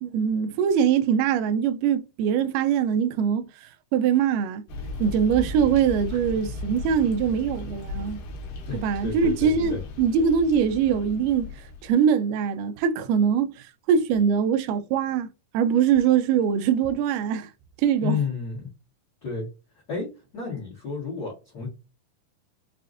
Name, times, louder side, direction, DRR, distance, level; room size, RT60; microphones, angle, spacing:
voice 1, 0.0-4.6 5.0-8.2 8.7-15.3 15.5-17.5 17.8-18.2, right 7 dB, 80° right, 2.0 m, -23 dB
sound 1, 4.7-11.9, left 3 dB, 75° left, 2.5 m, -36 dB
voice 2, 8.6-9.8 18.0-18.7 19.2-19.5 19.9-21.7, left 5 dB, 45° left, 1.3 m, -32 dB
5.8 x 2.4 x 2.5 m
omnidirectional pair, 4.2 m